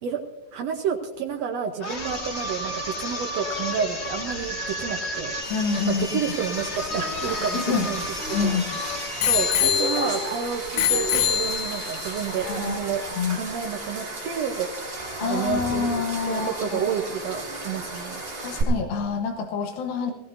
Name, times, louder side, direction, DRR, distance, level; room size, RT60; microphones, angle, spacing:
voice 1, 0.5-5.3 5.8-8.6 9.3-13.0 13.3-18.2, right 7 dB, 80° right, 3 dB, 1.5 m, -30 dB
sound 1, 1.8-9.6, left 1 dB, 40° left, 0.9 m, -32 dB
sound 2, 5.4-18.6, right 2 dB, 15° right, 2.6 m, -34 dB
voice 2, 5.5-6.2 7.5-7.9 8.3-8.6 12.3-12.8 13.1-13.4 15.2-16.9 18.4-20.1, left 5 dB, 90° left, 4 dB, 2.8 m, -27 dB
Bicycle bell, 6.9-8.6 9.2-10.3 10.8-12.0 12.7-12.8, left 9 dB, 70° left, 2.7 m, -25 dB
18.0 x 17.5 x 2.6 m, 0.99 s
omnidirectional pair, 4.2 m